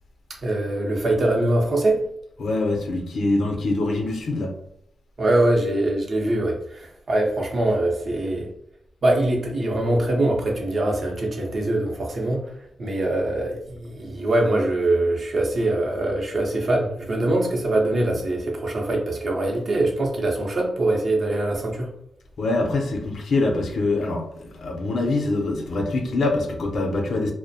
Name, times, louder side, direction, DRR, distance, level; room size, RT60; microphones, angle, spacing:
voice 1, 0.4-2.1 5.2-8.5 9.0-12.5 12.8-21.9, right 1 dB, 60° right, 0.6 m, -23 dB
voice 2, 2.4-4.5 22.4-27.3, left 2 dB, 75° left, 0.5 m, -24 dB
2.3 x 2.0 x 2.7 m
cardioid pair, 70°, 0 cm